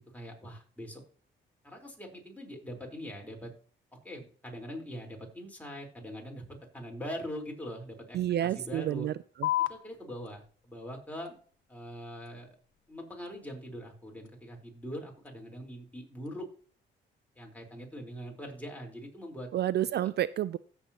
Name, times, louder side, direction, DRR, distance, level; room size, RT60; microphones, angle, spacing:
voice 1, 0.1-1.0 1.6-3.5 4.0-6.4 6.7-9.1 9.7-11.4 11.7-12.5 12.9-16.4 17.4-19.5, equal, 5° left, 0 dB, 4.1 m, -42 dB
voice 2, 8.1-9.1 9.4-9.5 19.5-20.6, right 12 dB, 55° right, 17 dB, 0.4 m, -29 dB
sound 1, 9.4-16.4, left 15 dB, 75° left, 1.0 m, -40 dB
16.0 x 7.0 x 2.9 m, 0.43 s
cardioid pair, 90°, 20 cm